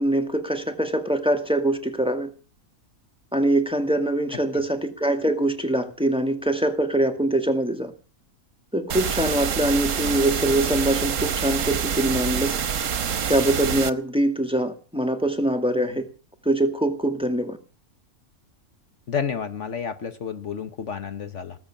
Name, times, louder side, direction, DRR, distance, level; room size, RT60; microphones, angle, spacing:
voice 1, 0.0-2.3 3.3-7.9 8.7-12.6 13.3-16.1 16.5-17.6, right 1 dB, 5° right, 2.0 m, -23 dB
sound 1, 8.9-13.9, right 7 dB, 60° right, 1.3 m, -26 dB
voice 2, 19.1-21.6, left 7 dB, 55° left, 1.3 m, -30 dB
19.5 x 7.5 x 8.7 m
omnidirectional pair, 1.5 m